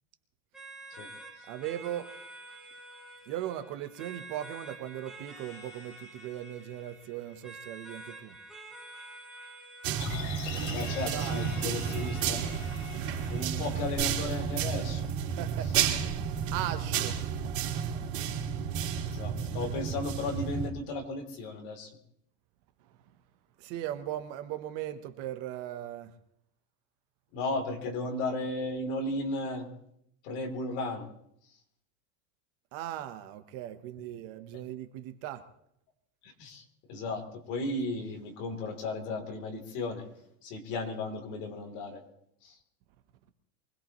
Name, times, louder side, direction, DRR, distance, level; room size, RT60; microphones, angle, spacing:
sound 1, 0.5-15.5, right 2 dB, ahead, 2.1 m, -49 dB
voice 1, 1.5-2.1 3.3-8.4 10.8-11.5 15.4-16.1 16.5-17.2 22.8-23.0 23.6-26.1 32.7-35.4, right 12 dB, 40° right, 0.9 m, -38 dB
sound 2, 9.8-20.7, right 8 dB, 70° right, 3.5 m, -32 dB
sound 3, 10.0-14.2 14.5-14.6, left 4 dB, 90° left, 6.3 m, -42 dB
voice 2, 10.7-12.5 13.3-15.1 19.0-21.9 27.3-29.7 30.2-31.1 36.2-40.0 40.4-42.0 42.4-42.6, left 2 dB, 45° left, 3.1 m, -35 dB
24.0 x 19.5 x 3.0 m
supercardioid pair, 175°, 40 cm